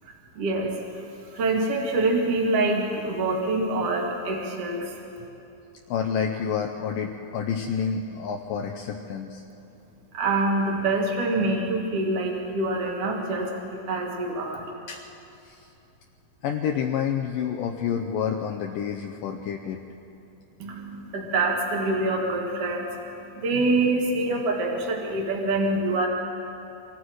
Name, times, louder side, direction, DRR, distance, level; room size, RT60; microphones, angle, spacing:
voice 1, 0.4-0.7 1.3-4.9 10.1-14.7 20.6-26.1, right 2 dB, 45° right, 0 dB, 2.7 m, -25 dB
voice 2, 5.9-9.4 14.9-15.0 15.4-15.7 16.4-19.8, left 7 dB, 75° left, 3 dB, 2.2 m, -29 dB
27.0 x 23.5 x 4.8 m, 2.8 s
omnidirectional pair, 4.5 m